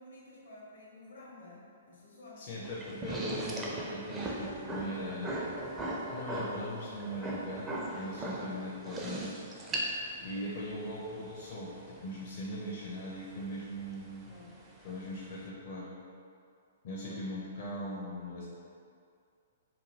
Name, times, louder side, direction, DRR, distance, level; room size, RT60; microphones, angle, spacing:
voice 1, 0.0-2.5 14.3-14.7 17.0-17.5, left 2 dB, 80° left, -5 dB, 0.8 m, -52 dB
voice 2, 2.4-5.6 6.1-9.4 10.2-14.3 14.8-15.9 16.8-18.4, equal, 50° left, -6 dB, 0.5 m, -40 dB
sound 1, 2.6-15.5, right 1 dB, 20° right, 0.4 m, -39 dB
3.0 x 2.4 x 2.8 m, 2.3 s
figure-of-eight pair, 120°, 0 cm